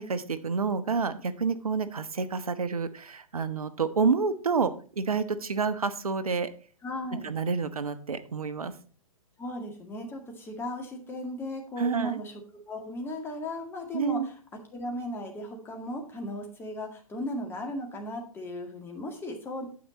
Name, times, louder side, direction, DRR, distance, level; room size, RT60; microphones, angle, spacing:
voice 1, 0.0-6.5 7.2-8.7 11.8-12.2 13.9-14.3, right 5 dB, 80° right, 12 dB, 1.1 m, -29 dB
voice 2, 6.8-7.3 9.4-12.3 12.7-14.2 14.7-19.6, left 1 dB, 10° left, 2 dB, 2.0 m, -36 dB
9.2 x 7.1 x 4.1 m, 0.41 s
figure-of-eight pair, 125°, 18 cm